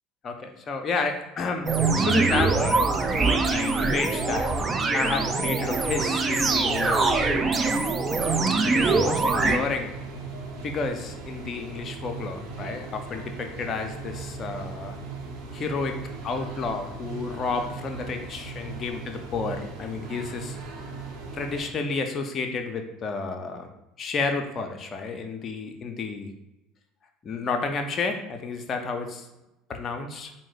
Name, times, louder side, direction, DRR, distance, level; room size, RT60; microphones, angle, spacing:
voice 1, 0.2-4.5 4.9-7.2 8.7-9.9 10.6-15.0 15.5-20.6 21.3-23.7 24.0-26.3 27.2-29.3 29.7-30.3, left 4 dB, 35° left, 5 dB, 0.5 m, -31 dB
sound 1, 1.7-9.6, right 3 dB, 25° right, 0.4 m, -23 dB
sound 2, 2.9-21.7, right 3 dB, 50° right, 0.9 m, -38 dB
4.4 x 2.1 x 3.9 m, 0.95 s
figure-of-eight pair, 65°, 0 cm